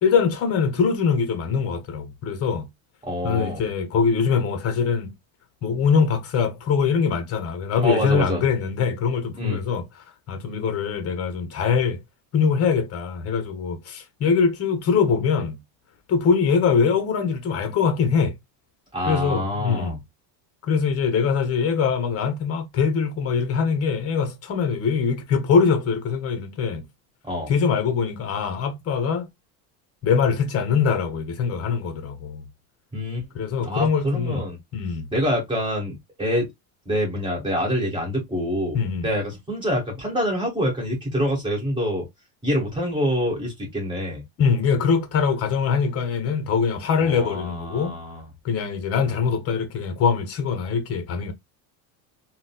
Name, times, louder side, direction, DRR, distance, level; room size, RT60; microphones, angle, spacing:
voice 1, 0.0-2.7 3.2-5.1 5.6-9.8 10.3-12.0 12.3-15.6 16.1-18.3 19.1-20.0 20.7-26.8 27.5-29.3 30.0-32.5 33.3-34.4 34.7-35.1 38.7-39.1 44.4-47.9 48.4-51.3, left 6 dB, 30° left, 0.8 m, -23 dB
voice 2, 3.0-3.6 7.8-8.4 9.4-9.6 18.9-20.0 27.2-27.5 32.9-33.2 33.6-34.6 35.1-36.5 36.8-38.8 39.0-42.1 42.4-44.2 47.0-48.2, equal, 10° right, 1.6 m, -26 dB
3.9 x 2.2 x 2.2 m
cardioid pair, 145°, 46 cm